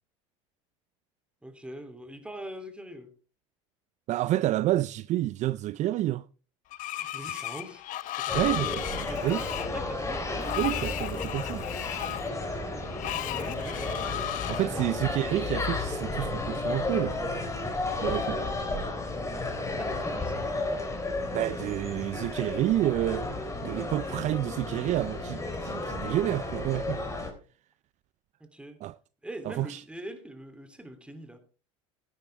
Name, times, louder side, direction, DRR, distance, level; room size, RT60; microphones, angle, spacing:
voice 1, 1.4-3.1 6.8-7.9 8.2-10.2 13.3-14.9 19.7-20.8 28.4-28.8 29.2-31.4, right 1 dB, 5° right, 3.0 m, -43 dB
voice 2, 4.1-6.2 7.2-7.5 8.3-8.7 9.2-9.4 10.6-11.6 14.5-17.2 18.0-18.5 21.3-27.0 28.8-29.0 29.4-29.8, right 14 dB, 45° right, 0.5 m, -29 dB
Screech, 6.7-14.7, left 14 dB, 50° left, 0.8 m, -35 dB
sound 1, 8.3-27.3, left 2 dB, 15° left, 3.7 m, -33 dB
15.5 x 10.5 x 3.5 m
hypercardioid pair, 90°, 17 cm